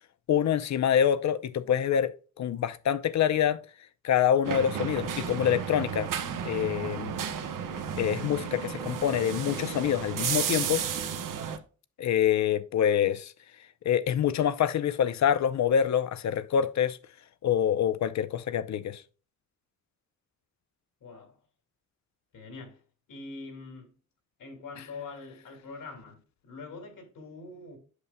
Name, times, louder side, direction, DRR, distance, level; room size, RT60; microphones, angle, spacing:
voice 1, 0.3-3.6 4.0-6.1 6.4-7.2 8.0-10.8 12.0-13.3 13.8-17.0 17.4-19.0, left 9 dB, 60° left, 0.6 m, -26 dB
sound 1, 4.4-11.6, right 7 dB, 75° right, 1.1 m, -33 dB
voice 2, 21.0-21.4 22.3-22.8 23.1-23.9 24.4-27.8, left 3 dB, 80° left, 2.7 m, -44 dB
8.2 x 6.8 x 2.2 m
wide cardioid pair, 175°, 32 cm